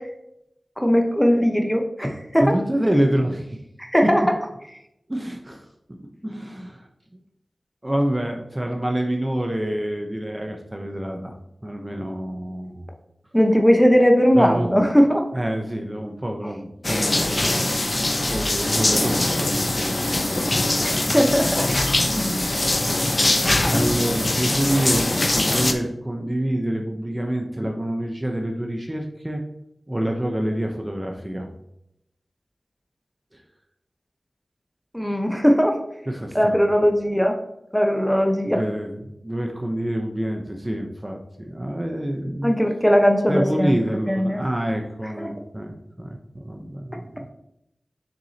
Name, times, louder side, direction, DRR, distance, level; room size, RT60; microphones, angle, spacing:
voice 1, 0.8-2.5 3.8-4.2 13.3-15.2 20.8-21.7 34.9-35.7 36.3-37.3 37.7-38.6 42.4-43.8 44.1-44.4 45.2-45.3, equal, 5° left, 3 dB, 1.0 m, -19 dB
voice 2, 2.4-3.6 5.1-6.0 6.2-7.2 7.8-11.3 11.6-12.9 14.3-14.7 15.3-21.0 22.1-23.3 23.7-29.4 29.9-31.5 33.3-33.4 36.1-36.6 38.5-42.5 43.3-47.3, right 1 dB, 20° right, 2 dB, 0.8 m, -27 dB
sound 1, 16.8-25.7, left 2 dB, 45° left, 0.7 m, -22 dB
7.0 x 6.1 x 2.8 m, 0.82 s
wide cardioid pair, 50°, 0 cm